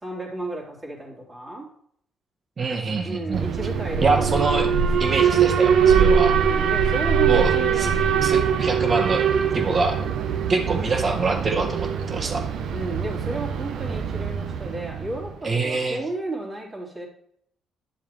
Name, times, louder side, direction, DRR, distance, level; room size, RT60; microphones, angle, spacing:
voice 1, 0.0-1.7 3.0-5.2 5.8-8.6 12.7-17.1, right 2 dB, 25° right, -3 dB, 3.6 m, -33 dB
voice 2, 2.6-3.4 4.0-4.7 5.0-6.3 7.3-7.5 7.8-7.9 8.2-9.2 9.5-10.0 10.5-12.4 15.4-16.0, right 3 dB, 40° right, 3 dB, 1.7 m, -24 dB
Alarm, 3.3-15.3, right 7 dB, 75° right, 0.8 m, -22 dB
11.0 x 7.1 x 3.2 m, 0.66 s
cardioid pair, 90°, 0 cm